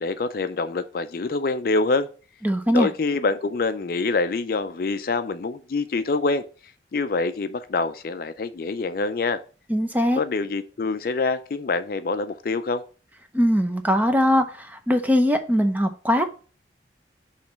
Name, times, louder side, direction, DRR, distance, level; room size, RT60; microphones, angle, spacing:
voice 1, 0.0-2.1 2.7-6.4 6.9-9.4 10.2-12.8, left 3 dB, 50° left, 11 dB, 0.4 m, -25 dB
voice 2, 2.4-2.9 9.7-10.2 13.3-16.2, equal, 10° right, 6 dB, 0.6 m, -21 dB
6.3 x 3.2 x 5.7 m, 0.37 s
head